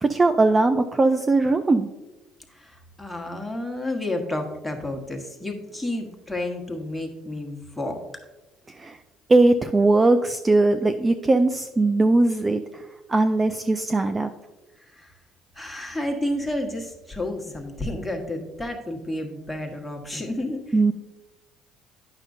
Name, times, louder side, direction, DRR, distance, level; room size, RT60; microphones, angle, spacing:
voice 1, 0.0-1.9 8.7-9.0 9.3-12.8 13.1-14.3 20.7-20.9, right 2 dB, 25° right, 8 dB, 0.4 m, -20 dB
voice 2, 2.5-8.0 14.8-15.1 15.5-20.8, left 1 dB, 5° left, 1 dB, 1.3 m, -31 dB
9.2 x 6.1 x 2.6 m, 1.1 s
supercardioid pair, 75°, 0 cm